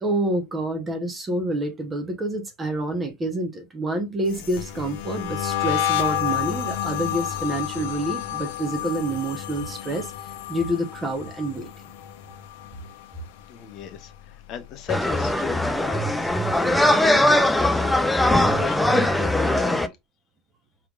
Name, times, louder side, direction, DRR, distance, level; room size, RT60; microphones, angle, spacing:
voice 1, 0.0-10.1 10.5-11.7, right 1 dB, 15° right, 0.8 m, -27 dB
sound 1, 4.3-13.4 13.7-14.2 14.5-16.0, left 11 dB, 65° left, 0.7 m, -30 dB
voice 2, 13.5-20.0, left 8 dB, 35° left, 0.8 m, -38 dB
sound 2, 14.9-19.9, left 1 dB, 5° left, 0.3 m, -20 dB
4.6 x 3.5 x 2.3 m
supercardioid pair, 175°, 0 cm